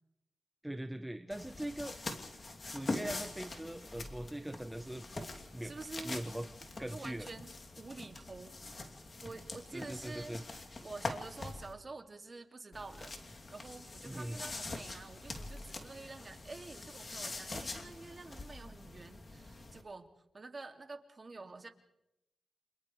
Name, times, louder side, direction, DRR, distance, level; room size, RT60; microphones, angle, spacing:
voice 1, 0.6-2.0 2.4-5.0 5.5-5.7 6.0-6.5 6.8-7.3 9.7-10.4 14.0-14.4, right 1 dB, 10° right, 7 dB, 0.9 m, -41 dB
sound 1, 1.3-11.7 12.7-19.8, left 2 dB, 40° left, 2.9 m, -44 dB
voice 2, 5.6-6.2 6.6-8.6 9.2-10.4 10.8-20.1 20.3-21.7, right 3 dB, 40° right, 5 dB, 2.4 m, -48 dB
29.0 x 27.5 x 3.3 m, 0.87 s
cardioid pair, 70°, 0 cm